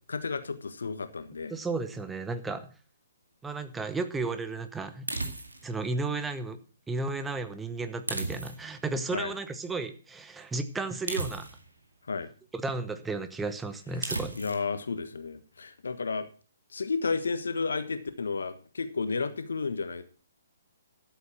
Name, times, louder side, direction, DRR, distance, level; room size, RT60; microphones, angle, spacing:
voice 1, 0.1-1.5 9.1-9.3 12.1-12.3 14.3-16.3 16.7-20.0, left 4 dB, 65° left, 11 dB, 1.4 m, -32 dB
voice 2, 1.5-2.7 3.4-5.1 5.6-6.6 6.9-11.4 12.5-14.3, right 3 dB, 10° right, 10 dB, 1.0 m, -33 dB
sound 1, 5.1-5.7 8.1-8.8 11.1-11.8 14.0-14.7, right 2 dB, 75° right, 2.1 m, -34 dB
12.5 x 8.0 x 6.1 m, 0.38 s
figure-of-eight pair, 125°, 0 cm